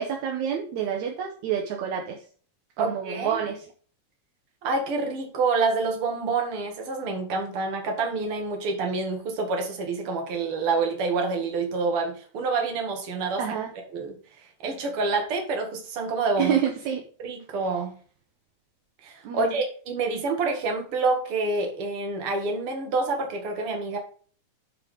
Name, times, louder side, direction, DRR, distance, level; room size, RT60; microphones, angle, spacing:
voice 1, 0.0-2.2 2.8-3.7 13.4-13.7 16.4-17.0 19.2-19.6, right 8 dB, 75° right, 2 dB, 2.2 m, -28 dB
voice 2, 2.8-3.4 4.6-13.4 13.9-14.2 14.6-16.6 17.2-17.9 19.0-24.0, right 3 dB, 50° right, 3 dB, 2.5 m, -27 dB
9.0 x 4.8 x 5.0 m, 0.43 s
omnidirectional pair, 3.5 m